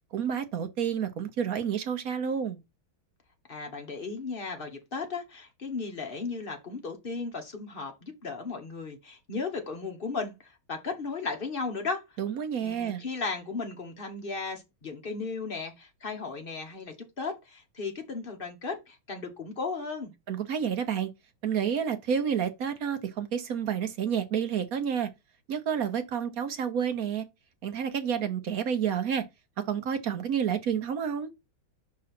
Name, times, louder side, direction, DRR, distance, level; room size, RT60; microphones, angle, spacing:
voice 1, 0.1-2.6 12.2-13.0 20.3-21.1 21.4-25.1 25.5-27.2 27.6-29.2 29.7-31.3, right 8 dB, 60° right, 1.0 m, -29 dB
voice 2, 3.5-12.0 12.6-20.1, left 4 dB, 30° left, 1.2 m, -35 dB
5.5 x 3.7 x 5.8 m
omnidirectional pair, 2.2 m